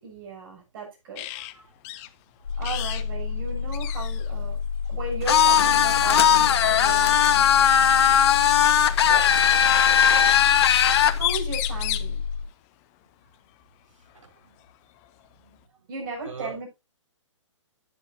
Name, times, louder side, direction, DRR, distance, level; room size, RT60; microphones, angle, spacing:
voice 1, 0.0-1.4 2.6-4.6 4.9-7.8 9.6-9.8 11.1-12.2 15.9-16.7, right 3 dB, 45° right, 7.2 m, -36 dB
sound 1, 1.1-1.5 1.8-2.1 2.6-3.1 3.3-3.4 3.7-4.3 5.5-5.7 7.4-7.5 8.6-9.5 10.8-10.9 11.1-12.2 14.1-14.2 14.6-15.6, left 16 dB, 30° left, 0.8 m, -33 dB
voice 2, 1.3-1.7 7.0-7.3 9.1-9.8 14.1-14.5 16.2-16.6, right 5 dB, 80° right, 4.0 m, -42 dB
sound 2, 2.4-12.5, left 5 dB, 75° left, 2.1 m, -30 dB
sound 3, 5.3-11.2, left 9 dB, 55° left, 1.1 m, -18 dB
11.0 x 9.9 x 2.7 m
hypercardioid pair, 140°, 16 cm